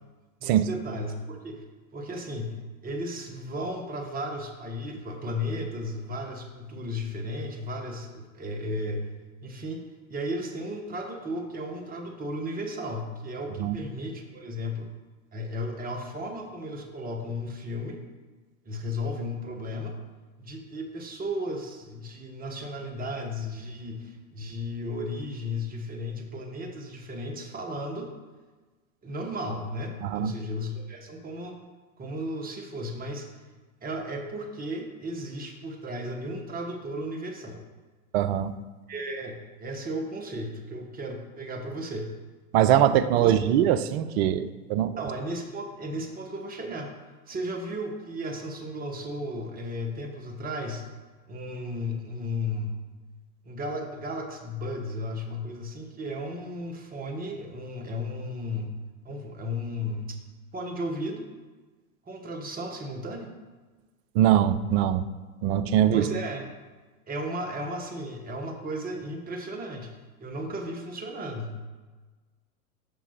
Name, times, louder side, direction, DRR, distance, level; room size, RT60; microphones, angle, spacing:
voice 1, 0.4-1.6 1.9-9.1 9.4-9.8 10.1-14.9 15.3-18.0 18.6-20.0 20.4-28.1 29.0-31.6 32.0-33.3 33.8-37.6 38.9-42.1 43.2-43.4 45.0-46.9 47.3-50.8 51.3-52.7 53.4-58.8 59.0-60.2 60.5-61.3 62.1-63.3 65.8-66.5 67.1-69.9 70.2-71.6, left 1 dB, 20° right, 3 dB, 1.1 m, -34 dB
voice 2, 30.0-30.3 38.1-38.5 42.5-44.9 64.1-65.0 65.4-66.0, right 11 dB, 50° right, 12 dB, 0.5 m, -22 dB
5.9 x 5.5 x 4.2 m, 1.3 s
hypercardioid pair, 90°, 43 cm